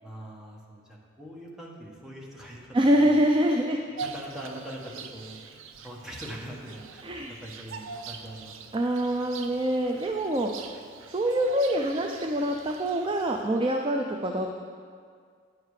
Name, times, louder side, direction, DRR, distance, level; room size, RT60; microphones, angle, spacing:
voice 1, 0.0-3.2 3.8-5.5 5.8-8.7, right 1 dB, 5° right, -3 dB, 1.2 m, -43 dB
voice 2, 2.7-3.8 7.0-7.3 8.7-10.7 11.1-14.5, right 1 dB, 25° right, 3 dB, 0.4 m, -25 dB
Bird vocalization bird call bird song, 4.0-13.6, right 5 dB, 90° right, 0.6 m, -43 dB
9.5 x 7.4 x 4.8 m, 2.1 s
head